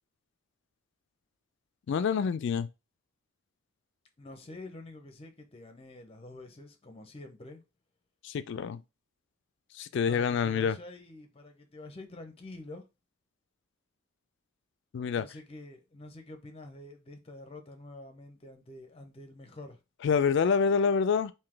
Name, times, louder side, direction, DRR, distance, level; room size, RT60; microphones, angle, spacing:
voice 1, 1.9-2.7 8.2-8.8 9.8-10.8 14.9-15.3 20.0-21.3, left 6 dB, 55° left, 0.3 m, -27 dB
voice 2, 4.2-7.6 10.1-12.8 15.2-19.8 20.1-20.7, left 2 dB, 30° left, 0.7 m, -47 dB
3.3 x 2.7 x 3.7 m
head